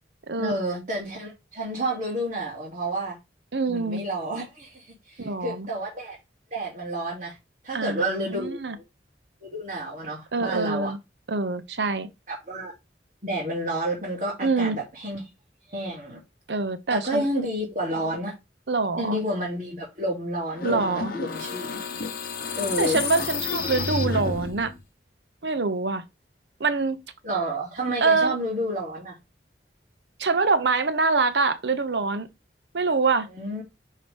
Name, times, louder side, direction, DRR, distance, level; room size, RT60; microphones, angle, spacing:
voice 1, 0.4-3.2 3.7-6.2 6.5-7.4 7.6-8.7 9.4-10.9 12.3-12.7 13.2-15.2 15.7-16.2 16.9-18.3 19.0-21.7 22.6-23.0 27.2-29.2 33.3-33.6, right 1 dB, 40° right, 3.1 m, -30 dB
voice 2, 3.5-4.0 5.2-5.7 7.7-8.8 10.3-11.0 11.3-12.1 14.4-14.8 16.5-17.3 18.7-19.2 20.6-21.1 22.8-24.7 25.4-26.0 26.6-27.0 28.0-28.3 30.2-32.3 32.7-33.3, right 3 dB, 75° right, 0.9 m, -25 dB
sound 1, 20.5-24.8, left 4 dB, 55° left, 0.9 m, -30 dB
6.0 x 4.7 x 3.6 m
head